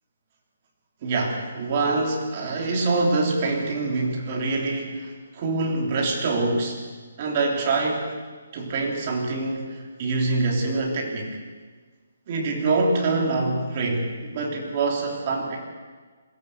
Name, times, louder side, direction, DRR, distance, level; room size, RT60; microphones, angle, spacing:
voice 1, 1.0-6.8 7.2-8.2 8.5-11.4 12.3-15.6, right 3 dB, 25° right, 0 dB, 3.4 m, -25 dB
21.5 x 15.5 x 8.2 m, 1.4 s
hypercardioid pair, 175°, 0 cm